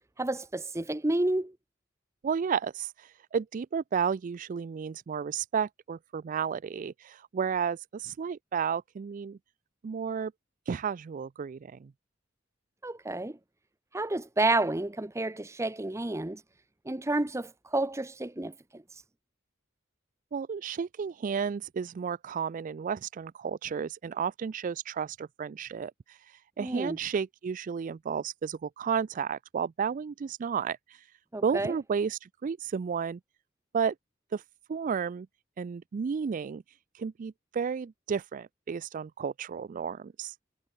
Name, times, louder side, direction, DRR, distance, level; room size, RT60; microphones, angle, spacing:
voice 1, 0.2-1.6 12.8-13.4 13.9-16.4 16.8-18.8 26.6-27.0 31.3-31.7, right 2 dB, 15° right, 0.7 m, -30 dB
voice 2, 2.2-9.4 9.8-10.3 10.7-11.9 20.3-31.1 31.4-33.2 33.7-33.9 34.3-34.4 34.7-35.3 35.6-36.6 36.9-40.4, right 6 dB, 40° right, 0.3 m, -32 dB
head